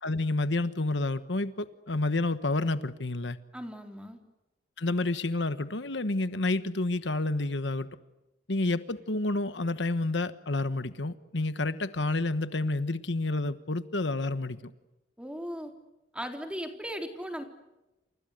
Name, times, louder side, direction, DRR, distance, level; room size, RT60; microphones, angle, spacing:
voice 1, 0.0-3.4 4.8-7.9 8.5-14.6, left 2 dB, 75° left, 12 dB, 1.3 m, -29 dB
voice 2, 3.5-4.2 15.2-15.7 16.1-17.4, equal, 5° right, 5 dB, 3.7 m, -37 dB
29.5 x 29.0 x 6.6 m, 0.97 s
head